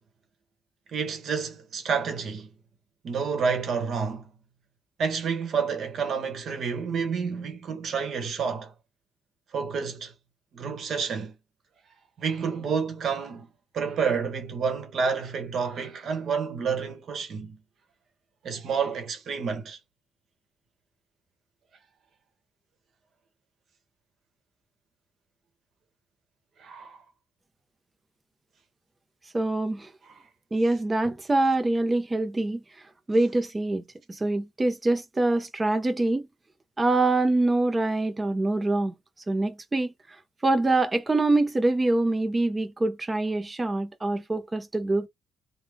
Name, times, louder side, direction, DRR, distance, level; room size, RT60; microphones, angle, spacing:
voice 1, 0.9-2.5 3.0-4.3 5.0-8.7 9.5-10.1 10.5-11.3 12.2-13.5 13.7-17.6 18.4-19.8 26.6-27.0, right 6 dB, 60° right, 1.2 m, -29 dB
voice 2, 29.3-29.9 30.5-32.6 33.1-33.8 34.1-36.3 36.8-38.9 39.3-39.9 40.4-45.1, right 2 dB, 20° right, 0.8 m, -24 dB
3.5 x 2.4 x 3.5 m
cardioid pair, 90°, 0 cm